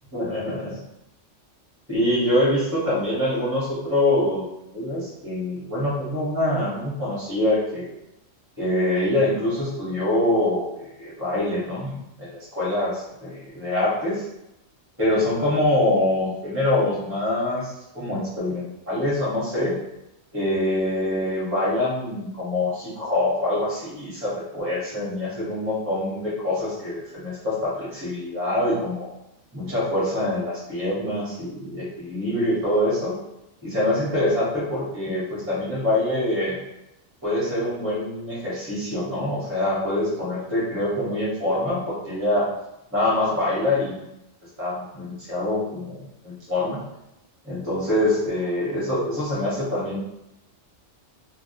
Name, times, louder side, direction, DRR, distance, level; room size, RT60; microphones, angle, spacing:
voice 1, 0.1-0.7 1.9-4.4 4.7-7.9 8.6-14.2 15.0-19.7 20.3-29.1 29.5-33.1 33.6-36.6 37.2-42.5 42.9-44.1 44.6-46.8 47.4-50.0, left 1 dB, 15° right, -7 dB, 0.7 m, -25 dB
2.2 x 2.1 x 2.8 m, 0.87 s
omnidirectional pair, 1.3 m